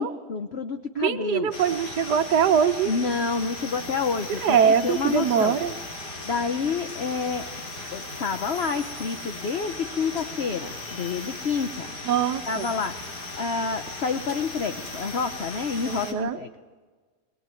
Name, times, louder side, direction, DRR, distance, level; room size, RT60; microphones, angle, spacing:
voice 1, 0.0-1.5 2.9-5.6 6.3-7.4 7.9-11.9 12.5-12.9 13.4-16.5, left 5 dB, 45° left, 7 dB, 1.0 m, -28 dB
voice 2, 1.0-2.9 4.3-5.7 12.0-12.7 15.8-16.4, right 8 dB, 85° right, 9 dB, 1.5 m, -23 dB
sound 1, 1.5-16.1, left 2 dB, 85° left, 4.2 m, -37 dB
21.5 x 20.0 x 9.2 m, 1.4 s
omnidirectional pair, 1.7 m